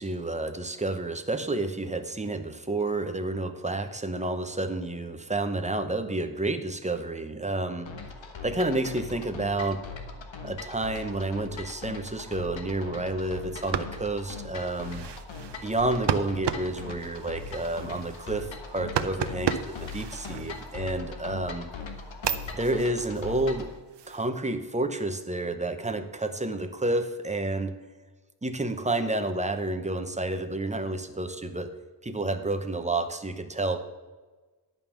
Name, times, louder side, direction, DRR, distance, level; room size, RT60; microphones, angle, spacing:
voice 1, 0.0-7.9 8.4-9.8 10.4-15.1 15.6-21.7 22.5-23.7 24.1-27.7 28.4-31.7 32.0-33.8, right 2 dB, 15° right, 7 dB, 0.8 m, -30 dB
sound 1, 7.9-23.7, left 4 dB, 75° left, 1.3 m, -40 dB
sound 2, 13.5-21.1 21.6-24.2, right 8 dB, 65° right, 0.7 m, -35 dB
11.0 x 5.5 x 7.1 m, 1.3 s
wide cardioid pair, 135°, 46 cm